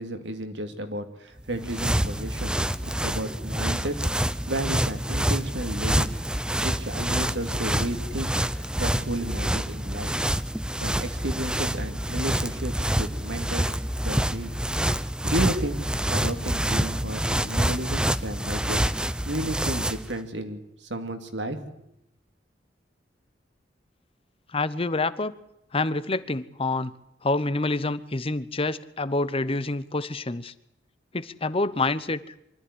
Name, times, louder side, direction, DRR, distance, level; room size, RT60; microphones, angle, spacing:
voice 1, 0.0-3.9 4.5-6.2 6.6-10.1 10.8-14.5 15.2-18.8 19.2-21.6, right 1 dB, 80° right, 6 dB, 2.7 m, -33 dB
sound 1, 1.4-20.1, right 1 dB, 5° right, 0.7 m, -27 dB
voice 2, 24.5-25.3 25.7-26.9 27.2-30.5 31.1-32.2, left 2 dB, 30° left, 14 dB, 1.0 m, -27 dB
24.0 x 14.0 x 10.0 m, 0.80 s
head